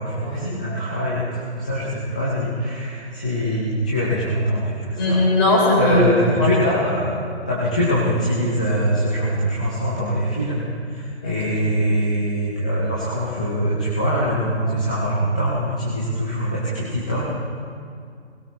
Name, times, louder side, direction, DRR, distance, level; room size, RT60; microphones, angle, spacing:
voice 1, 0.0-5.2 5.8-7.1 7.5-17.3, equal, 5° left, -8 dB, 0.5 m, -23 dB
voice 2, 5.0-6.0 6.4-6.8 11.2-11.3, left 1 dB, 25° left, -3 dB, 4.0 m, -19 dB
20.0 x 17.0 x 3.1 m, 2.2 s
hypercardioid pair, 155°, 33 cm